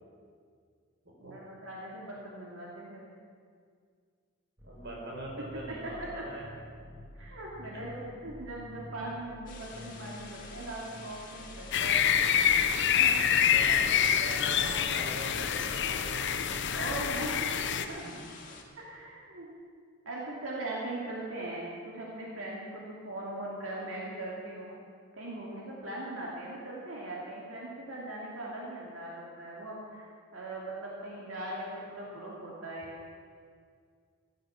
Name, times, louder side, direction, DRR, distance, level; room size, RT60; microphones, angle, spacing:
voice 1, 1.2-3.0 5.8-6.1 7.1-12.0 12.9-13.2 14.5-14.8 16.7-18.0 18.8-19.5 20.0-24.8 25.1-30.1 30.3-33.0, right 1 dB, 90° right, -4 dB, 2.6 m, -40 dB
Force Field, 4.6-17.2, left 1 dB, 15° right, 2.2 m, -49 dB
voice 2, 4.6-6.4 7.9-8.2 13.2-13.9 14.2-16.3 16.7-16.9 18.0-18.2, right 1 dB, 60° right, -2 dB, 4.5 m, -43 dB
sound 1, 9.5-18.6, left 4 dB, 45° left, 2.1 m, -49 dB
sound 2, 11.7-17.9, left 8 dB, 60° left, 0.8 m, -26 dB
15.5 x 12.5 x 7.3 m, 2.1 s
head